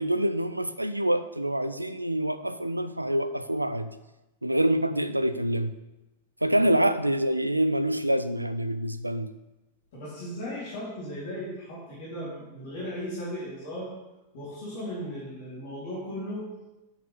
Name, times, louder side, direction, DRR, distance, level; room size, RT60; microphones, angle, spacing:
voice 1, 0.0-3.9 4.4-5.7 6.4-9.3, right 1 dB, 85° right, 12 dB, 0.4 m, -26 dB
voice 2, 9.9-13.9 14.3-16.4, equal, 50° left, -8 dB, 2.8 m, -36 dB
10.5 x 6.2 x 3.3 m, 0.99 s
figure-of-eight pair, 90°, 0 cm